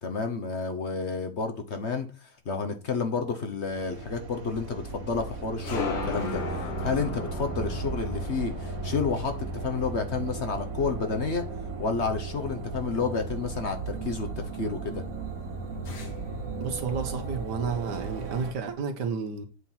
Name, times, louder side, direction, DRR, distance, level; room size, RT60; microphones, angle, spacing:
voice 1, 0.0-11.4 11.8-15.0, left 5 dB, 45° left, 1.1 m, -30 dB
sound 1, 2.9-16.7, left 5 dB, 85° left, 2.1 m, -40 dB
sound 2, 3.7-18.5, right 5 dB, 60° right, 1.6 m, -36 dB
voice 2, 16.6-19.4, right 5 dB, 80° right, 1.8 m, -31 dB
7.9 x 4.5 x 5.7 m
omnidirectional pair, 1.8 m